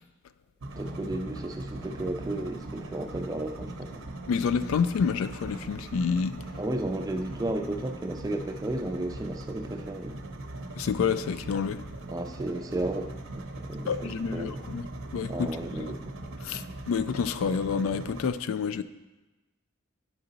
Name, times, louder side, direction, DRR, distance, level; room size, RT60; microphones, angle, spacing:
sound 1, 0.6-18.3, right 2 dB, 70° right, 0.7 m, -40 dB
voice 1, 0.8-4.0 6.6-10.2 12.1-14.6 15.3-16.1, right 1 dB, 15° right, 5 dB, 0.3 m, -34 dB
voice 2, 4.3-6.4 10.8-11.8 13.9-14.8 15.1-15.5 15.8-15.9 16.4-18.8, left 6 dB, 75° left, 13 dB, 0.3 m, -28 dB
9.6 x 4.0 x 3.9 m, 1.1 s
head